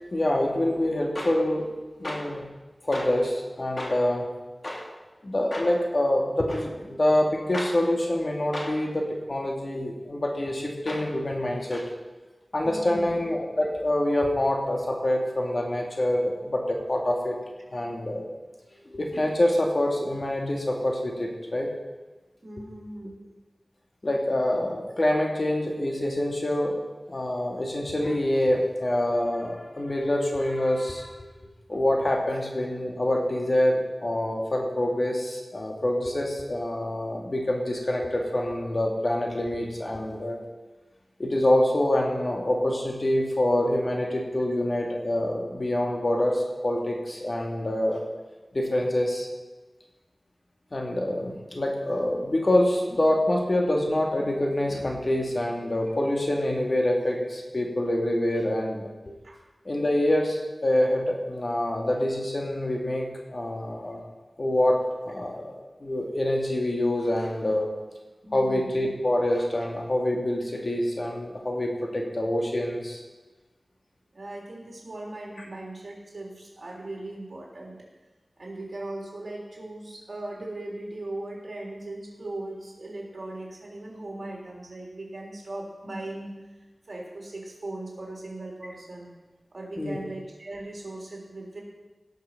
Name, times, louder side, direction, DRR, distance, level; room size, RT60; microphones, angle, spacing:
voice 1, 0.1-1.7 2.0-2.5 2.8-4.2 4.6-4.9 5.2-11.9 12.5-17.3 17.7-18.3 18.9-21.7 24.0-26.8 27.1-31.2 31.7-40.4 41.2-48.0 48.5-49.3 50.7-58.9 59.6-64.0 64.4-64.8 65.1-65.5 65.8-67.7 68.3-73.0 89.8-90.0, left 1 dB, 50° left, 0 dB, 2.4 m, -26 dB
voice 2, 12.6-13.1 22.4-23.2 59.2-59.4 68.2-68.7 74.1-77.8 78.4-86.3 86.9-89.1 89.5-91.6, right 2 dB, 70° right, -2 dB, 3.7 m, -38 dB
17.5 x 6.7 x 6.0 m, 1.2 s
wide cardioid pair, 70°, 0 cm